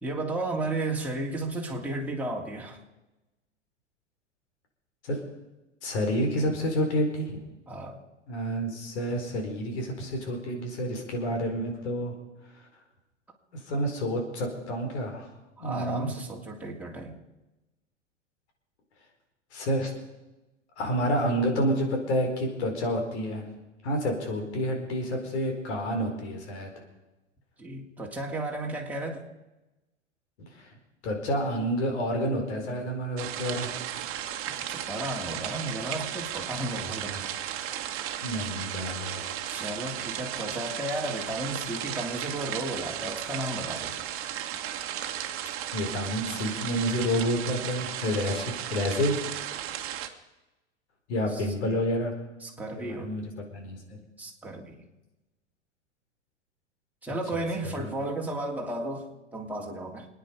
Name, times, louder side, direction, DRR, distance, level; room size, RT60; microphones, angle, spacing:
voice 1, 0.0-2.8 7.7-8.0 15.6-17.2 27.6-29.2 34.5-37.3 39.5-44.1 51.3-51.5 52.4-53.1 54.2-54.8 57.0-60.1, right 2 dB, 5° right, -2 dB, 3.0 m, -34 dB
voice 2, 5.8-7.4 8.3-12.1 13.7-15.3 15.6-16.1 19.5-19.9 20.8-23.4 23.8-26.7 30.4-30.7 31.0-33.7 38.2-39.3 45.7-49.2 51.1-52.1 52.8-53.2 53.5-54.0 57.3-57.9, equal, 65° left, 3 dB, 4.5 m, -29 dB
sound 1, 33.2-50.1, right 11 dB, 35° right, 1.6 m, -35 dB
28.5 x 9.8 x 5.1 m, 1.0 s
hypercardioid pair, 95°, 36 cm